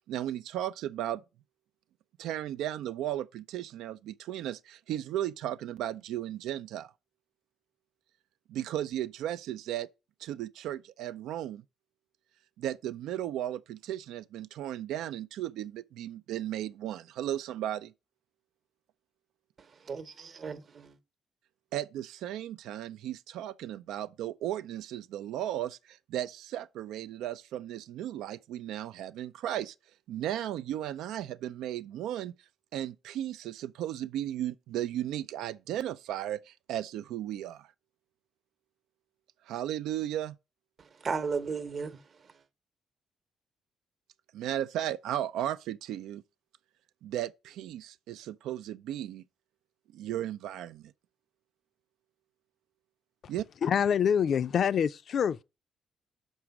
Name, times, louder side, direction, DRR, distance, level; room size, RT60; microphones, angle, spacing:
voice 1, 0.1-1.2 2.2-6.9 8.5-9.9 10.2-11.6 12.6-17.9 21.7-29.7 30.1-32.3 32.7-37.7 39.5-40.4 44.3-46.2 47.0-49.2 49.9-50.9 53.3-53.5, right 12 dB, 85° right, 0.4 m, -35 dB
voice 2, 19.6-21.0 40.8-42.3, right 5 dB, 45° right, 0.9 m, -36 dB
voice 3, 53.6-55.4, left 8 dB, 60° left, 0.5 m, -26 dB
6.3 x 5.0 x 5.9 m
cardioid pair, 90°, 0 cm